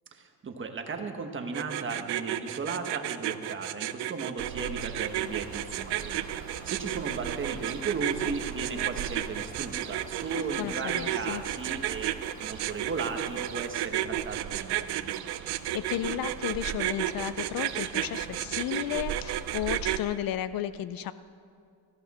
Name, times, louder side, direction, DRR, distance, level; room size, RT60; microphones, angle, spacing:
voice 1, 0.1-12.1 12.4-15.1, right 4 dB, 30° right, 5 dB, 1.2 m, -36 dB
sound 1, 1.5-20.0, right 14 dB, 85° right, 0.7 m, -32 dB
Ocean, 4.4-20.0, right 8 dB, 50° right, 0.6 m, -42 dB
sound 2, 5.0-13.7, left 3 dB, 20° left, 0.8 m, -51 dB
voice 2, 10.4-11.4 15.4-21.1, left 12 dB, 60° left, 14 dB, 0.5 m, -33 dB
18.0 x 14.5 x 4.2 m, 2.3 s
cardioid pair, 155°, 39 cm